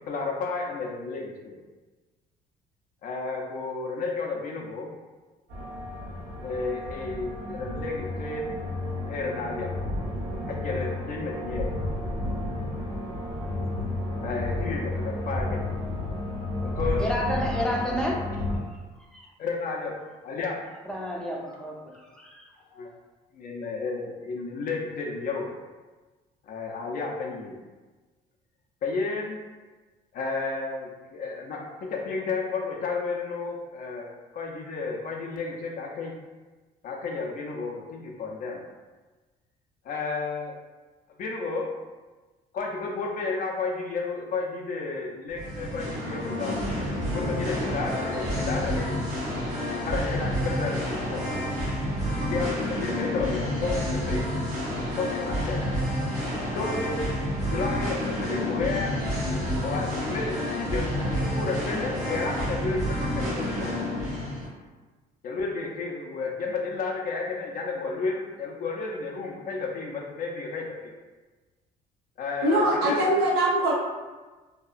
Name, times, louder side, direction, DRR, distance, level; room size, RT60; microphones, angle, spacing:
voice 1, 0.1-1.6 3.0-4.9 6.4-8.4 9.1-9.7 10.5-11.7 14.2-15.7 16.6-17.0 19.4-19.9 20.2-20.6 22.6-22.9 23.3-25.5 26.4-27.6 28.8-29.4 30.1-34.1 34.3-36.1 36.8-38.6 39.8-40.5 41.2-41.7 42.5-46.5 47.0-49.0 49.8-51.2 52.2-54.3 54.9-55.6 56.5-57.2 57.4-59.0 59.6-63.7 65.2-71.0 72.2-73.1, left 4 dB, 55° left, 0 dB, 0.5 m, -32 dB
sound 1, 5.5-18.6, left 1 dB, 60° right, 1.4 m, -32 dB
voice 2, 17.0-18.3 19.1-19.3 20.9-22.5, left 1 dB, 5° left, -2 dB, 0.5 m, -30 dB
Singing, 45.3-64.5, equal, 45° right, 1.2 m, -29 dB
voice 3, 72.4-73.7, right 1 dB, 80° right, -3 dB, 0.7 m, -22 dB
2.8 x 2.3 x 2.4 m, 1.3 s
cardioid pair, 110°, 17 cm